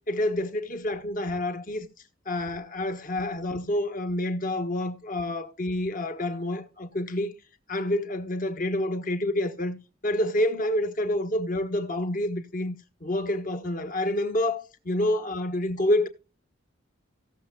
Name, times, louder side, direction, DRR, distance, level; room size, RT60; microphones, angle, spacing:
voice 1, 0.1-1.9 2.2-7.3 7.7-9.8 10.0-12.7 13.0-16.1, left 1 dB, 45° left, 1.5 m, -28 dB
17.0 x 6.9 x 2.3 m
head